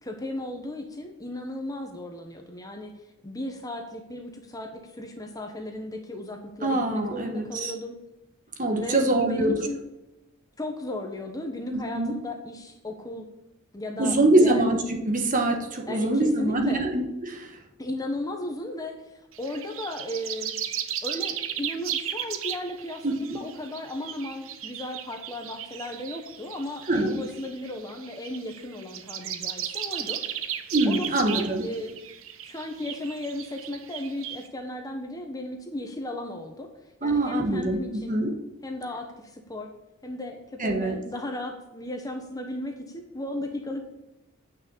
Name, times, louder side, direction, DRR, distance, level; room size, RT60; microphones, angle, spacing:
voice 1, 0.0-2.9 3.2-7.9 8.7-9.8 10.6-13.2 13.7-14.6 15.9-16.8 17.8-20.6 21.0-30.5 30.9-32.0 32.4-36.7 37.0-38.2 38.6-39.7 40.0-43.8, left 1 dB, 15° left, 4 dB, 1.2 m, -35 dB
voice 2, 6.6-7.7 8.6-9.7 11.7-12.1 14.0-14.8 15.0-17.5 23.0-23.4 26.9-27.2 30.7-31.7 37.0-38.4 40.6-41.0, right 2 dB, 35° right, 3 dB, 1.5 m, -24 dB
sound 1, 19.3-34.5, right 10 dB, 60° right, 0.9 m, -36 dB
9.3 x 6.3 x 8.5 m, 0.93 s
head